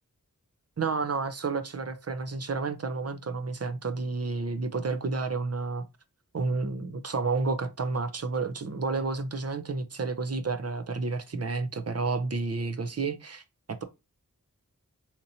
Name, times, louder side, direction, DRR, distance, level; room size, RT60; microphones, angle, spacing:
voice 1, 0.8-5.8 6.3-13.8, right 4 dB, 45° right, 0.6 m, -31 dB
4.0 x 2.9 x 2.7 m
wide cardioid pair, 45°, 33 cm